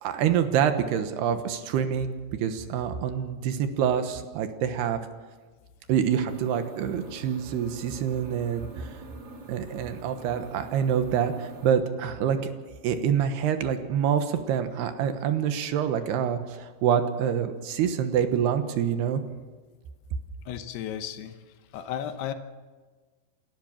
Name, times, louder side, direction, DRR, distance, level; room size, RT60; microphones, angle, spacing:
voice 1, 0.0-2.1 2.4-5.0 5.9-8.9 9.5-12.5 12.8-19.2, right 8 dB, 80° right, 8 dB, 3.3 m, -26 dB
sound 1, 6.3-11.7, right 2 dB, 40° right, 3.5 m, -45 dB
voice 2, 20.5-21.3 21.7-22.3, left 10 dB, 80° left, 8 dB, 3.1 m, -34 dB
28.5 x 13.0 x 7.4 m, 1.4 s
omnidirectional pair, 4.7 m